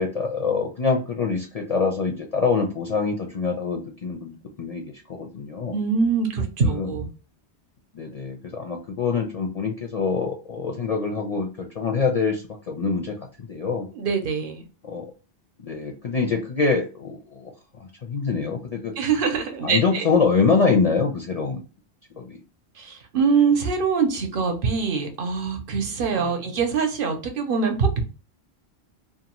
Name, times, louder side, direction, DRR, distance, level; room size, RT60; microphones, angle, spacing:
voice 1, 0.0-4.8 5.1-5.7 6.6-6.9 7.9-13.9 14.8-15.1 15.6-17.5 18.0-18.9 19.6-21.6 22.2-22.4 26.2-26.3, left 4 dB, 50° left, 2 dB, 0.5 m, -25 dB
voice 2, 5.7-7.1 13.9-14.7 19.0-20.1 22.8-28.0, right 5 dB, 55° right, 5 dB, 0.8 m, -23 dB
2.7 x 2.2 x 2.9 m, 0.35 s
omnidirectional pair, 1.1 m